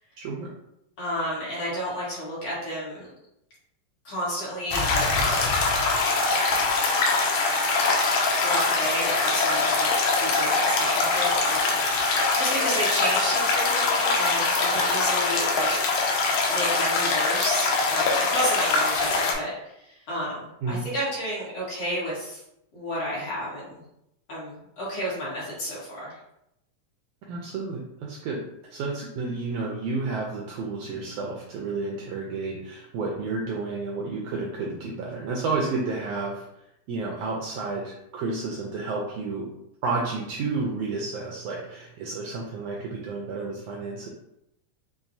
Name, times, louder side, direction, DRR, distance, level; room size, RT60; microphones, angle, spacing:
voice 1, 0.2-0.5 20.6-20.8 27.3-28.4 28.7-39.5 39.8-44.1, right 3 dB, 80° right, -2 dB, 1.5 m, -31 dB
voice 2, 1.0-3.1 4.1-5.0 8.4-9.9 10.2-11.8 12.0-15.8 16.5-19.5 20.1-22.4 22.7-23.8 24.3-26.2, equal, 55° left, -8 dB, 2.2 m, -31 dB
sound 1, 4.7-19.3, left 3 dB, 75° left, 1.8 m, -23 dB
5.8 x 2.2 x 2.6 m, 0.82 s
omnidirectional pair, 3.3 m